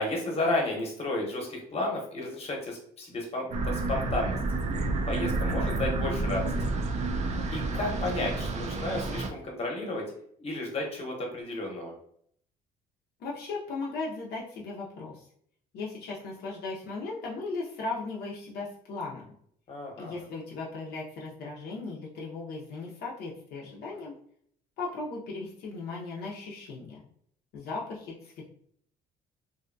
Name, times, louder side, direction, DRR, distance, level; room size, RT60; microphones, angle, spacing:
voice 1, 0.0-4.4 5.0-6.5 7.5-10.0 10.4-11.9 19.7-20.2, left 2 dB, 35° left, -1 dB, 1.0 m, -32 dB
sound 1, 3.5-9.3, right 2 dB, 45° right, 0.4 m, -30 dB
voice 2, 13.2-15.3 15.7-19.3 20.0-24.1 24.8-27.0 27.5-28.5, left 3 dB, 70° left, -4 dB, 0.6 m, -37 dB
2.7 x 2.2 x 2.5 m, 0.65 s
cardioid pair, 110°, 17 cm